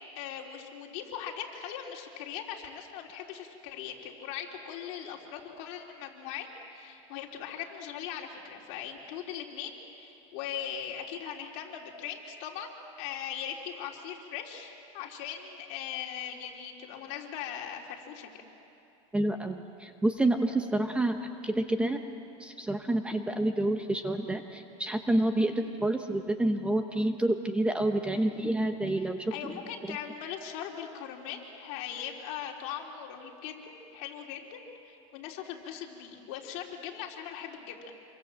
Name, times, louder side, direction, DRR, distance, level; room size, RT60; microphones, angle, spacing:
voice 1, 0.1-12.7 13.0-18.4 25.4-25.6 28.1-28.4 29.3-34.6 34.8-37.9, left 9 dB, 55° left, 0 dB, 3.5 m, -40 dB
voice 2, 19.1-22.0 22.4-29.5 29.9-30.0, right 1 dB, 5° right, 6 dB, 0.9 m, -28 dB
27.5 x 23.5 x 7.6 m, 2.8 s
supercardioid pair, 150°, 16 cm